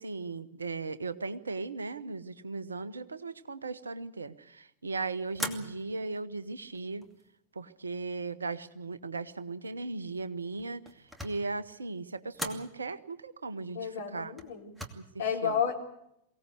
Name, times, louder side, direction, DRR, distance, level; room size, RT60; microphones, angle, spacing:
voice 1, 0.0-7.1 7.5-14.3 14.9-15.0 15.4-15.6, right 3 dB, 75° right, 14 dB, 1.1 m, -37 dB
sound 1, 5.3-6.0 6.7-7.3 10.6-11.5 12.3-12.7 14.4-14.9, equal, 5° right, 2.5 m, -39 dB
voice 2, 13.7-14.7 15.2-15.8, left 7 dB, 65° left, 2 dB, 3.9 m, -31 dB
23.5 x 17.5 x 8.2 m, 0.78 s
figure-of-eight pair, 90°, 0 cm